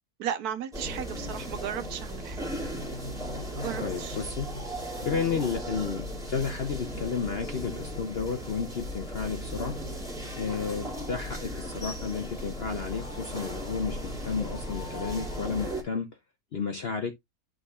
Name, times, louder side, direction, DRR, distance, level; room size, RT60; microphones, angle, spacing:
voice 1, 0.2-2.4 3.5-4.2, right 9 dB, 70° right, 1.1 m, -35 dB
sound 1, 0.7-15.8, equal, ahead, 2.2 m, -36 dB
voice 2, 1.1-1.4 3.8-4.5 5.0-9.7 10.3-16.1 16.5-17.1, left 5 dB, 55° left, 0.7 m, -32 dB
11.0 x 3.8 x 2.3 m
omnidirectional pair, 1.8 m